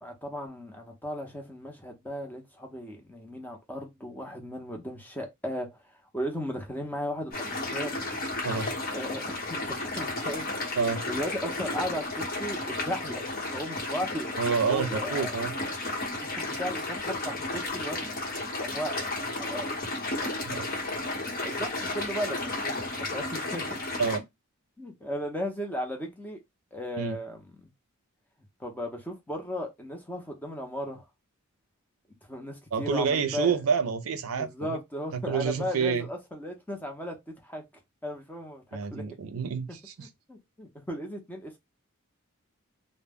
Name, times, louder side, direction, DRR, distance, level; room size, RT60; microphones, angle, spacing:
voice 1, 0.0-5.7 6.1-7.9 8.9-10.5 11.1-13.2 13.5-14.4 14.7-15.3 16.2-18.0 18.5-19.0 19.4-19.7 21.4-23.6 24.8-26.4 26.7-27.7 28.6-31.0 32.3-33.6 34.3-37.6 38.0-39.0 39.7-41.6, equal, 10° left, 0.6 m, -36 dB
sound 1, 7.3-24.2, left 2 dB, 45° left, 1.0 m, -33 dB
voice 2, 14.4-15.5 20.1-20.2 20.4-20.7 24.0-24.3 27.0-27.2 32.7-34.8 35.3-36.1 38.7-40.1, right 6 dB, 80° right, 0.4 m, -28 dB
2.1 x 2.0 x 3.4 m
head